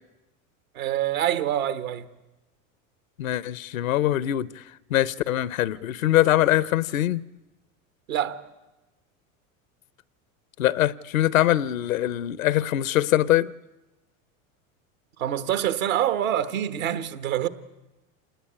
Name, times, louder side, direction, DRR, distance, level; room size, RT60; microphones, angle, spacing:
voice 1, 0.7-2.1 8.1-8.4 15.2-17.5, right 11 dB, 80° right, 1.5 m, -26 dB
voice 2, 3.2-4.6 4.9-7.2 10.6-13.5, left 13 dB, 85° left, 0.8 m, -23 dB
27.0 x 19.5 x 8.4 m
hypercardioid pair, 95°, 40 cm